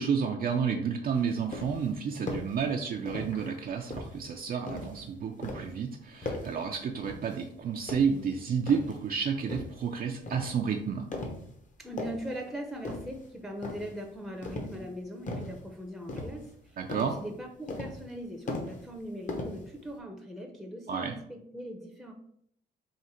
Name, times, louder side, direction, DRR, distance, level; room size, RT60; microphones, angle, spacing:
voice 1, 0.0-11.1 16.8-17.2 20.9-21.1, right 6 dB, 50° right, 3 dB, 0.4 m, -31 dB
sound 1, 1.1-1.9 2.3-2.6 3.1-3.5 3.9-5.1 5.4-5.8 6.2-6.6 7.0-7.4 7.8-9.0 9.5-9.8 10.3-10.6 11.1-11.5 11.8-12.4 12.8-13.3 13.6-14.0 14.4-14.9 15.3-15.6 16.1-16.6 16.9-17.2 17.7-18.2 18.5-19.0 19.3-19.9, left 2 dB, 40° left, 0.9 m, -38 dB
voice 2, 11.8-22.1, equal, ahead, 3 dB, 0.6 m, -40 dB
3.7 x 2.5 x 4.3 m, 0.70 s
cardioid pair, 90°, 20 cm